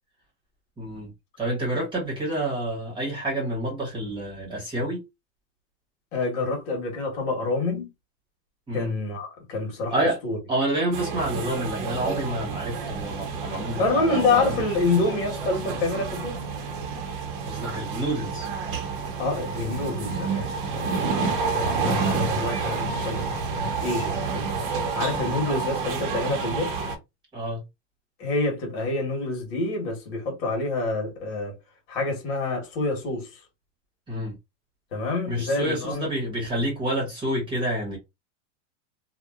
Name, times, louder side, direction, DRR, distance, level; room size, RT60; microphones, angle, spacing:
voice 1, 0.8-1.1 1.4-5.0 8.7-8.9 9.9-10.2 10.5-14.6 17.4-18.5 21.6-21.8 25.2-25.4 27.3-27.6 34.1-34.3 35.3-38.0, right 1 dB, 15° right, 1.2 m, -28 dB
voice 2, 6.1-7.9 8.7-10.4 13.8-16.3 19.2-23.4 23.8-24.5 24.9-26.7 28.2-31.5 31.9-33.3 34.9-36.1, left 3 dB, 55° left, 1.5 m, -27 dB
sound 1, 10.9-27.0, right 4 dB, 50° right, 0.9 m, -29 dB
2.8 x 2.3 x 2.4 m
supercardioid pair, 155°, 36 cm